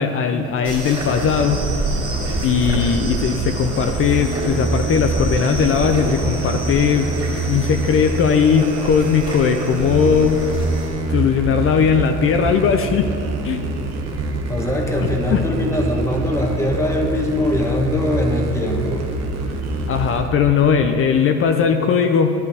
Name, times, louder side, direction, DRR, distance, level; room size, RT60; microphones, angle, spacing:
voice 1, 0.0-1.6 2.4-7.1 7.4-10.4 11.1-13.1 13.4-13.7 15.3-15.4 19.9-22.3, left 6 dB, 45° left, 6 dB, 0.5 m, -18 dB
sound 1, 0.6-10.9, right 1 dB, 15° right, 2.6 m, -29 dB
sound 2, 1.0-20.3, right 2 dB, 55° right, 1.2 m, -26 dB
voice 2, 14.5-19.0, left 1 dB, 10° left, 1 dB, 1.1 m, -22 dB
11.0 x 11.0 x 3.5 m, 2.9 s
cardioid pair, 135°, 31 cm